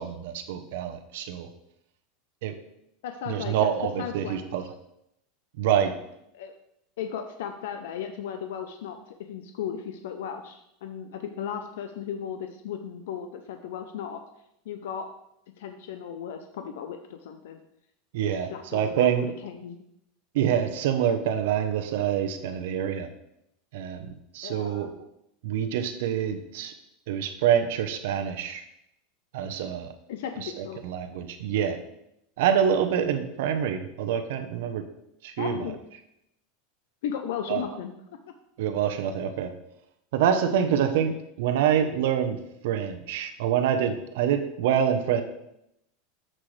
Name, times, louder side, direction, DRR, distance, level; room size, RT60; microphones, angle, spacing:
voice 1, 0.0-1.5 2.4-2.5 3.3-4.6 5.6-5.9 18.1-19.3 20.3-23.1 23.7-24.9 25.4-26.7 27.1-28.6 29.3-29.9 30.4-31.8 32.4-34.8 35.2-35.6 37.5-37.6 38.6-39.5 40.1-41.1 41.4-42.4 42.6-45.2, right 9 dB, 65° right, 7 dB, 0.9 m, -26 dB
voice 2, 3.0-3.7 4.0-4.6 6.3-6.5 7.0-14.2 14.7-15.1 15.6-17.6 18.3-19.8 24.4-24.9 30.1-30.8 35.4-35.8 37.0-37.9 40.7-40.8, left 8 dB, 70° left, 6 dB, 0.7 m, -36 dB
10.0 x 7.6 x 3.3 m, 0.81 s
supercardioid pair, 175°, 0 cm